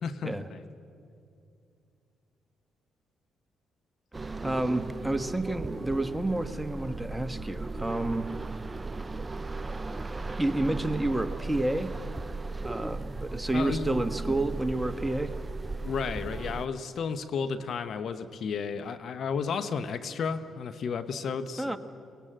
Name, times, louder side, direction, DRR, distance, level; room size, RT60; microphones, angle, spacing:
voice 1, 0.0-0.7 13.5-14.0 15.8-21.8, left 5 dB, 65° left, 11 dB, 1.0 m, -33 dB
sound 1, 4.1-16.7, right 3 dB, 25° right, 0.7 m, -36 dB
voice 2, 4.4-8.3 10.4-11.9 12.6-15.3 21.6-21.8, right 2 dB, 10° right, 9 dB, 1.4 m, -29 dB
23.5 x 19.5 x 7.7 m, 2.5 s
supercardioid pair, 60°, 0 cm